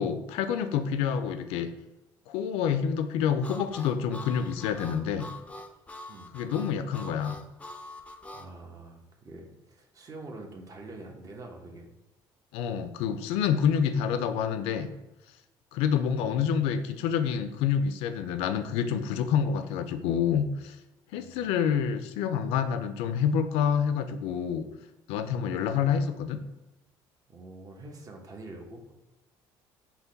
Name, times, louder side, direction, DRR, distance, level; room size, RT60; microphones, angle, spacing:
voice 1, 0.0-1.7 2.3-5.3 6.3-7.4 12.5-14.9 15.7-20.8 21.1-24.7 25.1-26.4, left 7 dB, 90° left, 9 dB, 0.4 m, -27 dB
Harmonica, 3.4-8.5, left 1 dB, 15° left, 0.4 m, -44 dB
voice 2, 8.3-11.9 21.1-21.5 27.3-28.9, right 2 dB, 35° right, 2 dB, 0.9 m, -45 dB
5.7 x 2.2 x 3.9 m, 1.0 s
cardioid pair, 100°, 10 cm